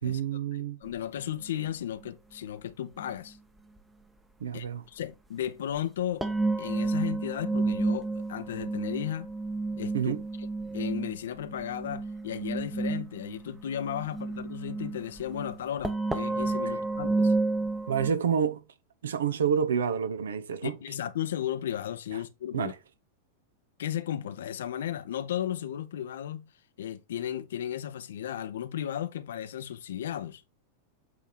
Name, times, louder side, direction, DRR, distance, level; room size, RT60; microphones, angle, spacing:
voice 1, 0.0-0.8 4.4-4.8 9.9-10.2 17.9-18.6 19.0-20.8 22.5-22.7, right 7 dB, 65° right, 0.9 m, -28 dB
voice 2, 0.8-3.4 4.5-6.3 6.6-9.3 9.8-10.5 10.7-17.3 20.6-22.7 23.8-26.5 26.8-30.4, left 10 dB, 60° left, 0.7 m, -35 dB
sound 1, 0.9-1.0 3.0-3.1 6.2-18.1, right 3 dB, 10° right, 0.9 m, -31 dB
8.4 x 3.5 x 4.4 m
figure-of-eight pair, 90°, 0 cm